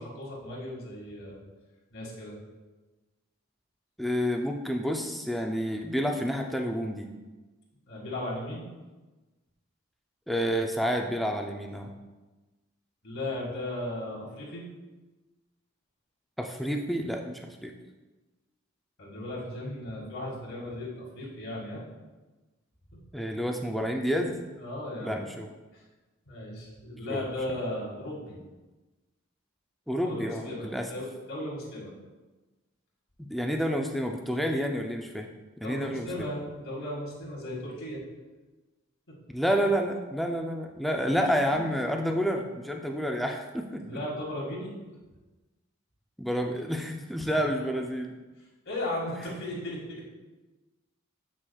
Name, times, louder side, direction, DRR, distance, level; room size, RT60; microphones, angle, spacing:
voice 1, 0.0-1.4 1.9-2.4 7.9-8.7 13.0-14.6 19.0-21.8 22.9-23.0 24.5-25.2 25.7-25.8 26.3-28.4 30.0-31.9 35.6-38.0 41.0-41.2 41.5-41.6 43.8-44.7 48.6-50.1, left 1 dB, 70° left, -6 dB, 2.0 m, -36 dB
voice 2, 4.0-7.1 10.3-11.9 16.4-17.7 23.1-24.4 25.0-25.5 27.1-27.2 29.9-30.8 33.2-35.3 35.6-36.3 39.3-44.0 46.2-48.1, equal, ahead, 2 dB, 0.4 m, -29 dB
7.9 x 6.1 x 2.3 m, 1.2 s
head